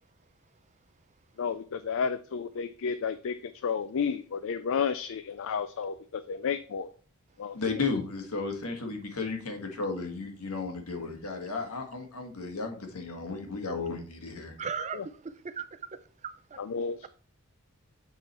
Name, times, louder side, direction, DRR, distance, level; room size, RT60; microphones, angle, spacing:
voice 1, 1.4-6.9 7.4-7.6 14.9-15.0 16.6-17.1, left 6 dB, 60° left, 0.4 m, -32 dB
voice 2, 7.5-14.5, left 4 dB, 80° left, 1.5 m, -34 dB
voice 3, 14.6-15.8 16.2-16.6, right 6 dB, 30° right, 0.4 m, -37 dB
8.2 x 3.7 x 4.3 m
head